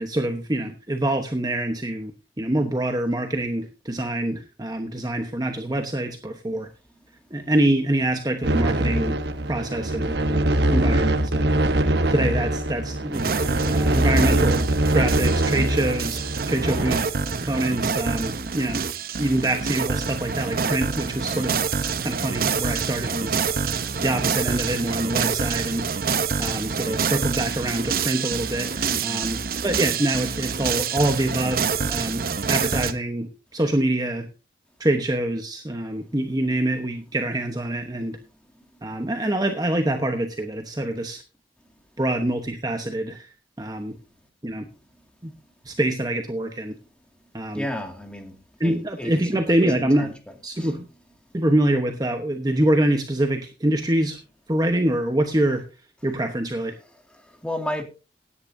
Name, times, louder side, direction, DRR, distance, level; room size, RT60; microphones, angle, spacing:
voice 1, 0.0-2.1 2.4-6.7 7.3-9.2 9.5-11.5 12.1-13.3 13.7-14.7 14.9-17.1 17.4-18.8 19.2-21.5 22.0-23.4 24.0-25.9 26.4-34.3 34.8-38.2 38.8-41.2 42.0-43.3 43.6-44.0 44.4-44.7 45.2-45.3 45.6-46.8 47.3-47.7 48.6-50.1 50.4-50.8 51.3-54.2 54.5-55.6 56.0-56.8, right 1 dB, 20° right, 1.0 m, -25 dB
sound 1, 8.4-17.0, right 1 dB, 70° right, 1.1 m, -23 dB
sound 2, 13.1-32.9, right 5 dB, 55° right, 0.8 m, -27 dB
voice 2, 28.9-29.3 38.9-39.0 47.5-48.4 48.6-49.5 50.0-50.1 50.5-50.7 57.1-57.8, left 1 dB, 5° left, 2.1 m, -33 dB
17.0 x 10.5 x 2.7 m
head